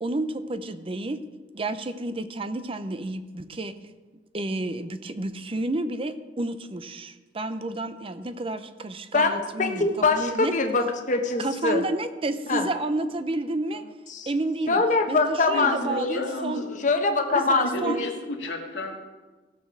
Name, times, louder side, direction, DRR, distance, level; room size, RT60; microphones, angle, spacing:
voice 1, 0.0-1.2 1.5-3.8 4.3-10.6 11.4-13.8 14.3-14.8 15.1-16.6 17.3-18.0, right 2 dB, 30° right, 11 dB, 0.5 m, -30 dB
voice 2, 9.1-11.8 12.5-12.7 14.1-14.3 14.7-16.2 16.8-18.1, left 3 dB, 45° left, 5 dB, 1.0 m, -24 dB
voice 3, 15.5-16.8 17.6-19.0, left 1 dB, 85° left, 2 dB, 1.9 m, -33 dB
16.5 x 6.5 x 6.2 m, 1.3 s
head